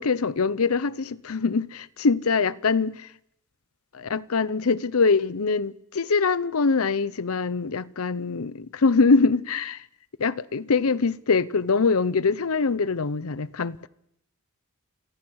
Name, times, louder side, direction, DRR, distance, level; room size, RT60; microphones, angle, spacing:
voice 1, 0.0-3.1 3.9-9.8 10.2-13.9, left 4 dB, 80° left, 0.7 m, -23 dB
28.0 x 14.5 x 6.4 m
head